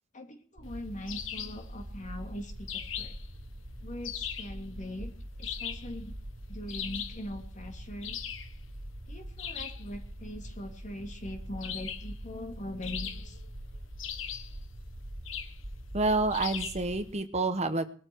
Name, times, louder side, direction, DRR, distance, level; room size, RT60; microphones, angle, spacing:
voice 1, 0.1-3.1 3.8-5.1 5.4-6.1 6.5-8.2 9.1-13.4, left 1 dB, 40° left, 4 dB, 2.8 m, -41 dB
sound 1, 0.6-17.1, equal, 50° right, 1.5 m, -44 dB
sound 2, 1.1-1.6 2.7-3.3 4.0-4.6 5.4-5.9 6.7-7.2 8.0-8.5 9.4-9.8 11.6-12.1 12.8-13.5 14.0-14.6 15.2-15.6 16.3-16.9, left 9 dB, 85° left, 1.5 m, -39 dB
voice 2, 15.9-17.9, right 3 dB, 35° right, 9 dB, 1.1 m, -28 dB
20.5 x 12.5 x 4.7 m, 0.43 s
head